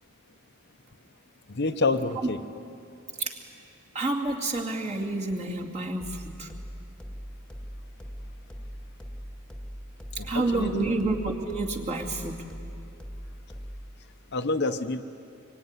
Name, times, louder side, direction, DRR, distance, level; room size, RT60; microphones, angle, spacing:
voice 1, 1.5-2.4 10.2-10.9 14.3-15.0, left 3 dB, 50° left, 8 dB, 0.9 m, -28 dB
voice 2, 3.9-6.5 10.2-12.4, right 2 dB, 30° right, 0 dB, 2.5 m, -29 dB
sound 1, 6.0-14.0, equal, 5° left, 1.7 m, -41 dB
25.5 x 24.0 x 9.7 m, 2.7 s
head